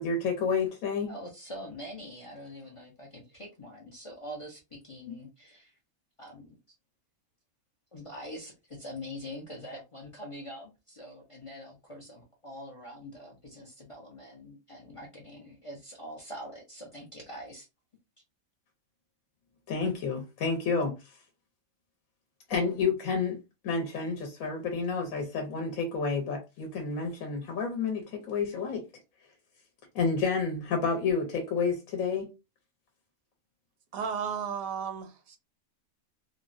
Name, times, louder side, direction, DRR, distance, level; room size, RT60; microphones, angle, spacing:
voice 1, 0.0-1.1 5.1-5.2 19.7-20.9 22.5-23.4 23.6-28.8 29.9-32.3, left 4 dB, 70° left, 1.1 m, -30 dB
voice 2, 1.1-5.8 6.2-6.5 7.9-17.7, equal, 50° left, 0.3 m, -44 dB
voice 3, 33.9-35.4, right 7 dB, 75° right, 1.1 m, -34 dB
3.6 x 2.0 x 2.5 m
omnidirectional pair, 1.5 m